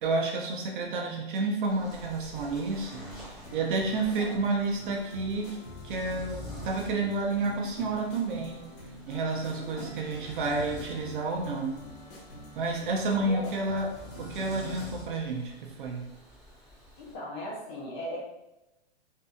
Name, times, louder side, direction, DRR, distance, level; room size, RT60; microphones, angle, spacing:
voice 1, 0.0-5.6 5.8-8.6 9.1-11.8 12.5-13.9 14.2-16.1, right 3 dB, 50° right, 0 dB, 0.7 m, -30 dB
sound 1, 1.7-17.2, equal, ahead, 1.2 m, -48 dB
sound 2, 2.9-14.9, left 1 dB, 50° left, 0.9 m, -47 dB
voice 2, 9.4-9.9 13.1-13.5 17.0-18.2, left 1 dB, 25° left, -4 dB, 0.4 m, -38 dB
2.7 x 2.6 x 2.3 m, 0.93 s
hypercardioid pair, 155°, 33 cm